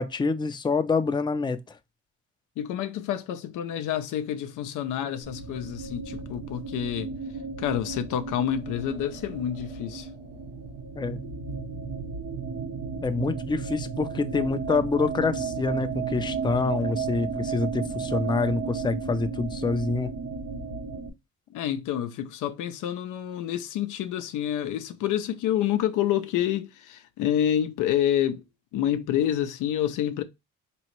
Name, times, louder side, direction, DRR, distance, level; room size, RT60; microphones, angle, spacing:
voice 1, 0.0-1.6 11.0-11.2 13.0-20.1, left 4 dB, 15° left, 0.5 m, -26 dB
voice 2, 2.6-7.1 7.6-10.1 21.5-28.4 28.7-30.2, left 10 dB, 90° left, 0.6 m, -28 dB
sound 1, 5.2-21.1, right 5 dB, 85° right, 0.8 m, -34 dB
4.1 x 3.0 x 3.0 m
cardioid pair, 90°, 30 cm